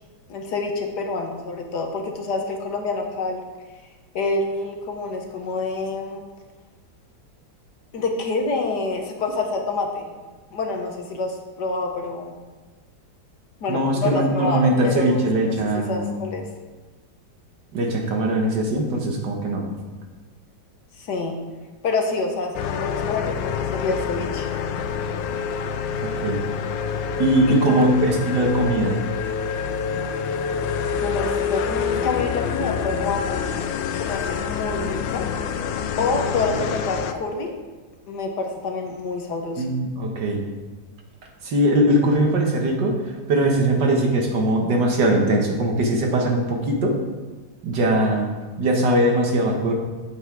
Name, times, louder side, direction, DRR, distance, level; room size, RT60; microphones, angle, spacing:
voice 1, 0.3-3.4 4.1-6.2 7.9-10.1 10.5-12.3 13.6-16.5 21.0-21.4 21.8-24.5 27.5-27.9 31.0-33.4 34.0-35.2 36.0-37.5 38.1-39.6, left 3 dB, 65° left, 3 dB, 1.6 m, -27 dB
voice 2, 13.7-16.1 17.7-19.6 26.0-26.4 27.2-29.0 39.6-40.4 41.4-43.0 43.3-47.0 47.6-48.3 48.6-49.7, right 1 dB, 65° right, 1 dB, 1.9 m, -21 dB
sound 1, 22.5-37.1, left 7 dB, 85° left, 1.3 m, -27 dB
8.2 x 8.0 x 4.7 m, 1.3 s
omnidirectional pair, 2.0 m